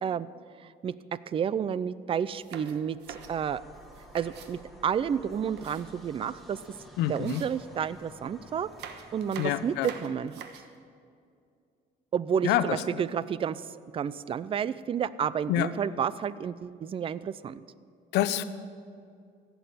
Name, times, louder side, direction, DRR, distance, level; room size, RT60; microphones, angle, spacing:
voice 1, 0.6-3.6 4.1-6.6 7.1-8.7 9.1-10.5 12.1-13.6 13.9-17.6, right 8 dB, 35° right, 17 dB, 0.4 m, -31 dB
sound 1, 2.3-4.6 5.1-6.4 6.7-6.8 7.2-8.1 8.6-10.8, right 7 dB, 80° right, 1.3 m, -46 dB
sound 2, 3.1-9.8, right 1 dB, ahead, 1.9 m, -51 dB
voice 2, 7.0-7.4 9.4-9.9 12.4-13.0 15.5-15.7 18.1-18.4, left 12 dB, 90° left, 12 dB, 0.7 m, -27 dB
15.5 x 7.0 x 9.4 m, 2.3 s
cardioid pair, 110°, 17 cm